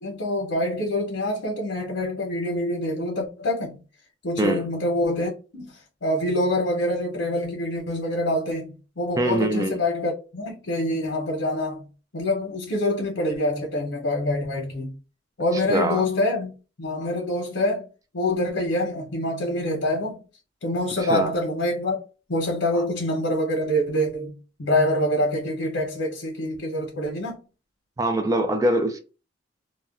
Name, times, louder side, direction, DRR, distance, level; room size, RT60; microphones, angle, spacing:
voice 1, 0.0-3.8 4.2-11.9 12.1-14.9 15.4-16.5 16.8-17.9 18.1-20.2 20.6-22.0 22.3-27.4, left 1 dB, 75° left, 0.7 m, -26 dB
voice 2, 9.2-9.8 15.7-16.0 21.1-21.3 22.7-22.8 28.0-29.0, right 1 dB, 20° right, 0.4 m, -23 dB
2.3 x 2.1 x 3.5 m
head